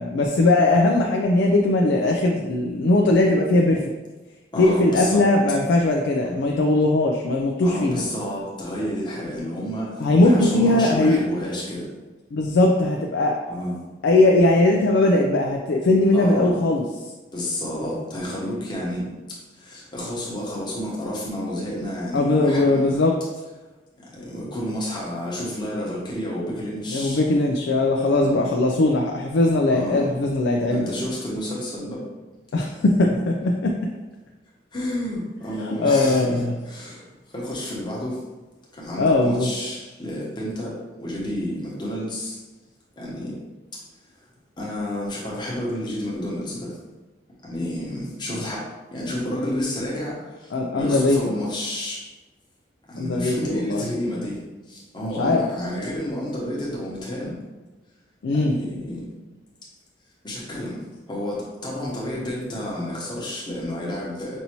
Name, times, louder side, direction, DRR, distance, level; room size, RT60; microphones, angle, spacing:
voice 1, 0.0-3.8 4.6-8.0 10.0-11.2 12.3-13.4 14.0-16.8 22.1-23.1 26.9-30.9 32.5-33.7 35.6-36.5 39.0-39.5 50.5-51.4 53.0-53.9 55.0-55.5 58.2-58.6, left 2 dB, 70° left, 1 dB, 0.4 m, -19 dB
voice 2, 4.5-5.2 6.2-6.4 7.6-11.9 13.5-13.7 16.1-16.6 17.3-23.0 24.0-27.2 28.2-28.4 29.7-30.1 30.7-32.0 34.7-38.2 38.7-42.4 43.0-43.3 43.7-43.8 44.6-46.8 47.4-52.0 52.9-57.4 58.3-59.1 60.2-64.4, left 1 dB, 25° left, -5 dB, 1.0 m, -30 dB
5.4 x 2.7 x 2.9 m, 1.2 s
head